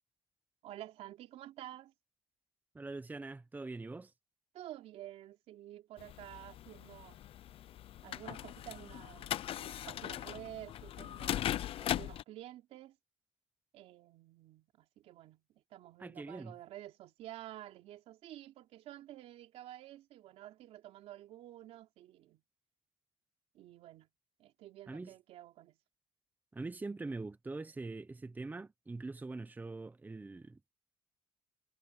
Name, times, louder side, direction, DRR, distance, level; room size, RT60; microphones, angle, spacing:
voice 1, 0.6-1.9 4.5-7.2 8.0-13.0 13.7-22.4 23.5-24.1 24.4-25.8, right 13 dB, 80° right, 3.6 m, -51 dB
voice 2, 2.7-4.1 16.0-16.5 24.9-25.1 26.5-30.7, right 3 dB, 15° right, 0.9 m, -43 dB
sound 1, 6.0-12.2, left 12 dB, 60° left, 0.6 m, -39 dB
cardioid pair, 105°, 10 cm